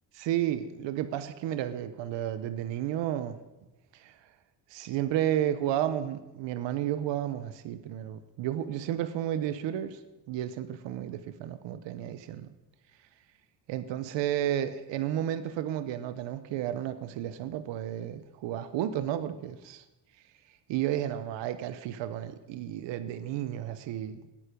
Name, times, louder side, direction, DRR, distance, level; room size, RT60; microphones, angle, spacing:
voice 1, 0.1-3.4 4.0-4.1 4.7-10.0 10.3-12.5 13.7-19.8 20.7-24.3, right 11 dB, 85° right, 12 dB, 1.0 m, -32 dB
17.5 x 9.2 x 5.2 m, 1.0 s
cardioid pair, 105°, 43 cm